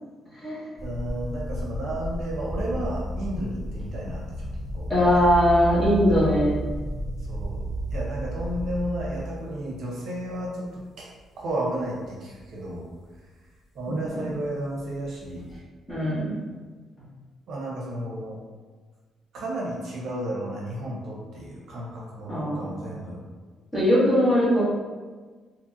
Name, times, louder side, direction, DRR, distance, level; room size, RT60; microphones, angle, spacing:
sound 1, 0.8-9.6 10.3-10.7 11.2-11.3 14.9-15.6, right 1 dB, 35° left, 1.4 m, -32 dB
voice 1, 0.8-5.2 7.2-7.6 7.9-11.1 11.4-12.9 13.2-13.5 13.7-15.5 17.5-18.4 19.3-23.2, right 1 dB, 65° right, -4 dB, 0.7 m, -33 dB
voice 2, 4.9-6.5 13.9-14.2 15.9-16.3 22.3-22.6 23.7-24.6, equal, 15° left, -9 dB, 1.2 m, -21 dB
2.9 x 2.6 x 2.5 m, 1.4 s
cardioid pair, 125°, 0 cm